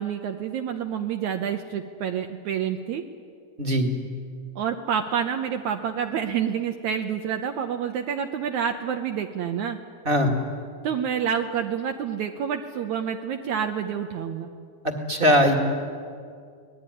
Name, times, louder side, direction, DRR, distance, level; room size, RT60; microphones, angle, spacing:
voice 1, 0.0-3.0 4.6-9.8 10.8-14.5, right 8 dB, 70° right, 5 dB, 2.1 m, -28 dB
voice 2, 14.8-15.6, equal, 20° right, 4 dB, 1.8 m, -20 dB
25.0 x 19.5 x 9.9 m, 2.2 s
omnidirectional pair, 3.8 m